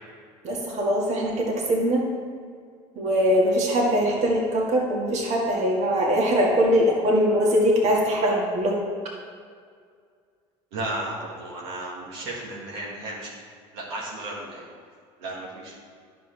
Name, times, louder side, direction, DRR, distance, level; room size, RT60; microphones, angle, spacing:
voice 1, 0.4-2.0 3.0-8.7, equal, 55° right, -2 dB, 1.9 m, -22 dB
voice 2, 10.7-13.3 13.7-14.6 15.2-15.8, right 2 dB, 90° right, -4 dB, 1.9 m, -34 dB
9.9 x 6.9 x 3.4 m, 2.1 s
supercardioid pair, 85°, 14 cm